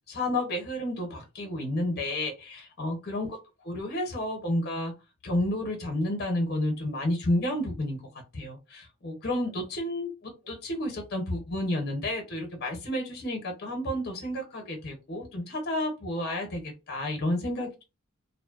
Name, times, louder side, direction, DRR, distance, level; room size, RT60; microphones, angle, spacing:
voice 1, 0.1-3.4 3.6-4.9 5.2-8.0 8.3-17.8, left 1 dB, 50° left, 2 dB, 0.7 m, -31 dB
2.6 x 2.0 x 2.3 m, 0.27 s
head